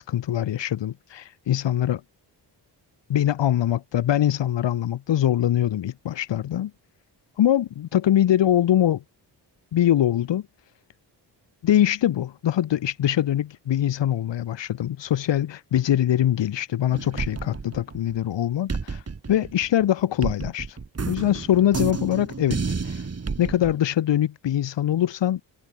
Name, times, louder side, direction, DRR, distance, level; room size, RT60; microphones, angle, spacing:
voice 1, 0.0-2.0 3.1-6.7 7.4-9.0 9.7-10.4 11.6-19.0 19.3-20.8 21.1-23.0 23.4-25.4, left 11 dB, 85° left, 4.4 m, -23 dB
sound 1, 16.9-18.3 18.7-23.8, right 4 dB, 35° right, 7.3 m, -31 dB
cardioid pair, 90°, 42 cm